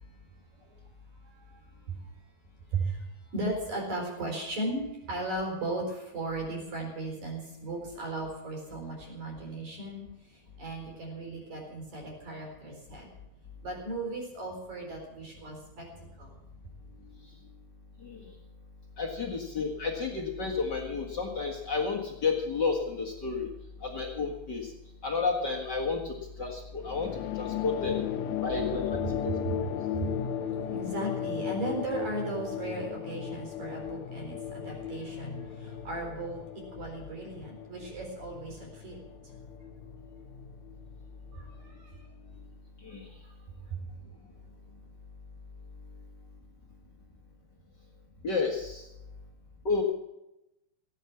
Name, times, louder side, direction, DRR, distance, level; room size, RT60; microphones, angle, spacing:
voice 1, 1.1-2.1 2.7-13.1 13.6-16.3 29.3-29.6 29.8-39.0 41.3-42.1 43.2-43.3 43.7-43.8, right 2 dB, 50° right, 0 dB, 5.4 m, -37 dB
voice 2, 19.0-23.5 23.8-24.7 25.0-27.1 27.3-28.0 28.4-29.7 42.8-43.1 48.2-48.9 49.6-49.8, left 4 dB, 45° left, 0 dB, 1.5 m, -31 dB
sound 1, 26.8-41.7, left 9 dB, 85° left, 1.6 m, -36 dB
17.0 x 9.4 x 7.2 m, 0.92 s
omnidirectional pair, 4.3 m